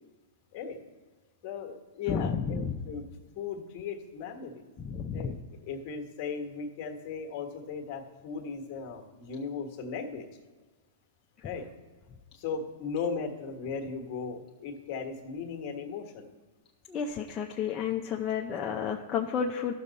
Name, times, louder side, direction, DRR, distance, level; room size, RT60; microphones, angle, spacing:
voice 1, 1.4-2.6 2.9-3.0 3.3-4.7 5.1-5.4 5.6-10.3 11.4-11.7 12.3-16.3, left 5 dB, 45° left, 4 dB, 1.4 m, -37 dB
voice 2, 2.1-2.8 4.8-5.4 16.9-19.7, left 7 dB, 25° left, 0 dB, 0.6 m, -31 dB
14.0 x 6.4 x 4.1 m, 1.3 s
hypercardioid pair, 130°, 0 cm